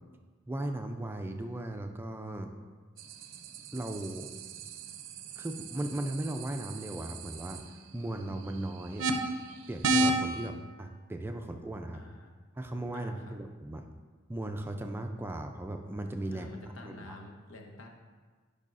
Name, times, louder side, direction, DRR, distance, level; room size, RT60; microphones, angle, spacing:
voice 1, 0.5-2.5 3.7-4.3 5.4-9.1 9.7-12.0 12.6-13.9 14.3-16.5 16.8-17.2, right 1 dB, 10° right, 5 dB, 0.3 m, -37 dB
sound 1, 3.0-10.5, right 2 dB, 70° right, 0.5 m, -34 dB
voice 2, 11.9-12.4 12.9-13.3 16.3-17.9, left 2 dB, 80° left, 2 dB, 0.9 m, -48 dB
10.5 x 5.3 x 2.5 m, 1.4 s
head